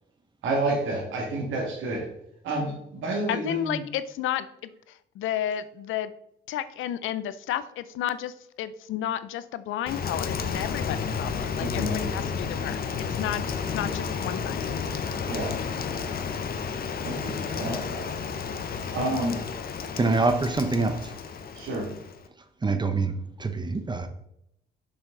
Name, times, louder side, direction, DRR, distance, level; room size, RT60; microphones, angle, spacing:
voice 1, 0.4-2.1 2.4-3.8 11.6-12.2 15.3-15.6 17.0-18.0 18.9-19.5 21.5-21.9, right 2 dB, 80° right, -1 dB, 2.2 m, -29 dB
voice 2, 3.3-6.1 6.5-12.8 13.1-13.4 13.7-14.6, left 11 dB, 80° left, 14 dB, 0.5 m, -32 dB
Rain, 9.9-22.3, left 6 dB, 50° left, 0.8 m, -32 dB
voice 3, 19.9-21.1 22.6-24.1, right 3 dB, 20° right, 8 dB, 0.9 m, -25 dB
6.8 x 5.9 x 3.9 m, 0.77 s
cardioid pair, 90°, 20 cm